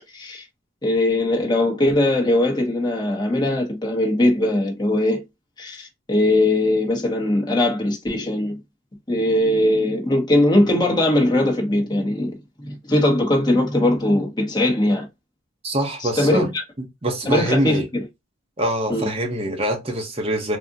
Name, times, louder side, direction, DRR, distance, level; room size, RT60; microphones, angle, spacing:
voice 1, 0.1-0.4 0.8-5.2 5.6-8.6 9.1-12.3 12.6-15.1 16.0-16.5 17.3-18.0 18.9-19.1, left 1 dB, 20° left, 0.7 m, -20 dB
voice 2, 15.6-16.5 17.0-17.9 18.6-20.6, right 1 dB, 30° right, 0.7 m, -24 dB
3.5 x 2.0 x 2.6 m
head